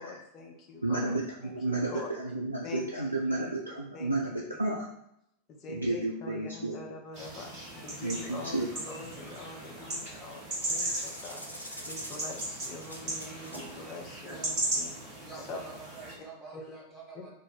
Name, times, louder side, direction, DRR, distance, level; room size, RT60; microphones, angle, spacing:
voice 1, 0.0-2.1 2.6-3.5 3.9-4.2 5.5-10.4 10.7-15.6 16.2-16.8 17.1-17.3, left 3 dB, 35° left, 1 dB, 0.6 m, -45 dB
voice 2, 0.8-4.9 5.7-6.7 8.0-8.7, right 2 dB, 85° right, -2 dB, 0.3 m, -32 dB
sound 1, 7.1-16.1, right 1 dB, 40° right, 1.3 m, -37 dB
sound 2, 10.6-13.8, equal, 85° left, 0.5 m, -44 dB
voice 3, 15.2-17.3, right 4 dB, 5° right, -6 dB, 1.3 m, -46 dB
2.5 x 2.3 x 3.9 m, 0.79 s
figure-of-eight pair, 90°, 0 cm